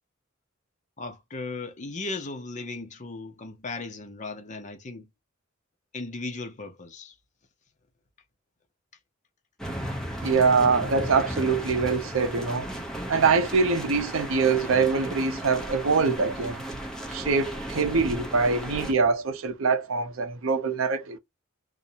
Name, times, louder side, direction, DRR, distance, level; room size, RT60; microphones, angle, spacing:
voice 1, 1.0-5.1 5.9-7.1, left 3 dB, 35° left, 0.7 m, -36 dB
sound 1, 9.6-18.9, right 1 dB, 5° left, 0.7 m, -35 dB
voice 2, 10.2-12.7 13.1-16.6 17.1-21.2, right 4 dB, 70° right, 0.6 m, -24 dB
2.5 x 2.1 x 2.6 m
head